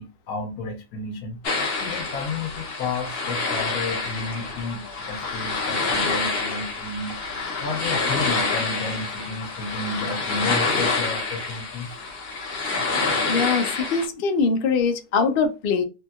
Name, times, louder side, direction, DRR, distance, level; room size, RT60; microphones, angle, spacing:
voice 1, 0.0-1.4 1.8-7.2 7.6-12.0, left 3 dB, 90° left, 1.1 m, -32 dB
sound 1, 1.4-14.1, left 3 dB, 50° left, 0.9 m, -27 dB
voice 2, 13.3-15.8, left 5 dB, 65° left, 0.5 m, -22 dB
3.0 x 2.7 x 2.2 m
omnidirectional pair, 1.5 m